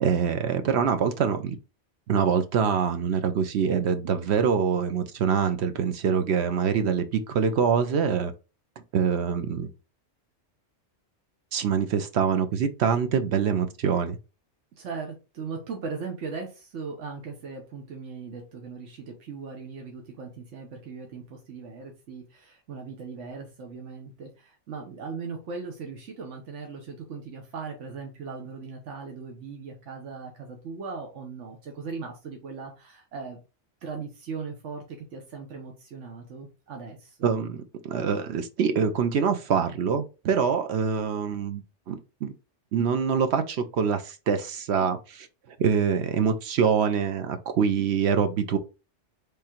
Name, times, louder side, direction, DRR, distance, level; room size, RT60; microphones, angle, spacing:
voice 1, 0.0-1.6 2.1-8.3 8.9-9.7 11.5-14.2 37.2-41.6 41.9-42.3 42.7-45.3 45.6-48.6, right 7 dB, 70° right, 0.9 m, -25 dB
voice 2, 14.8-33.4 33.8-37.3, right 4 dB, 85° right, 1.3 m, -38 dB
3.7 x 3.3 x 4.3 m
omnidirectional pair, 1.2 m